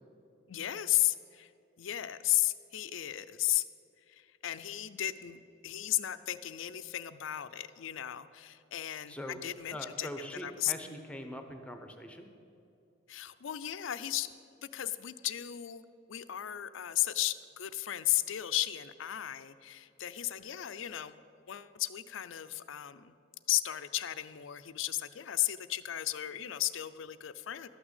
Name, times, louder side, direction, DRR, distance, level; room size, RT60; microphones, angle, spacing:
voice 1, 0.5-1.5 1.8-3.6 4.1-10.7 13.1-14.3 14.6-15.8 16.1-21.2 21.5-23.1 23.5-27.7, left 14 dB, 75° left, 13 dB, 0.5 m, -34 dB
voice 2, 9.1-9.4 9.7-12.3, equal, 5° left, 6 dB, 0.8 m, -42 dB
12.5 x 6.1 x 8.2 m, 2.7 s
head